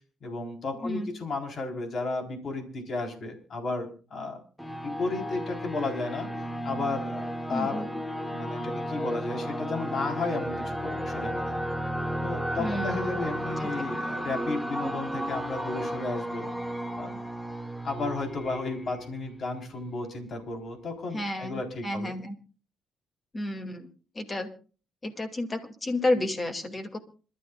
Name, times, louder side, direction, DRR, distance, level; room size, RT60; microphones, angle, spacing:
voice 1, 0.2-4.4 4.8-6.3 6.6-7.9 8.3-11.6 12.2-16.5 17.0-17.2 17.8-22.2, left 3 dB, 55° left, 3 dB, 3.9 m, -33 dB
sound 1, 4.6-19.9, equal, 5° left, 1.2 m, -33 dB
voice 2, 7.5-7.9 12.6-13.2 13.6-13.7 21.1-22.3 23.3-23.9 24.1-24.5 25.0-27.0, left 1 dB, 30° left, 6 dB, 2.4 m, -31 dB
26.5 x 12.5 x 2.4 m, 0.38 s
cardioid pair, 90°, 0 cm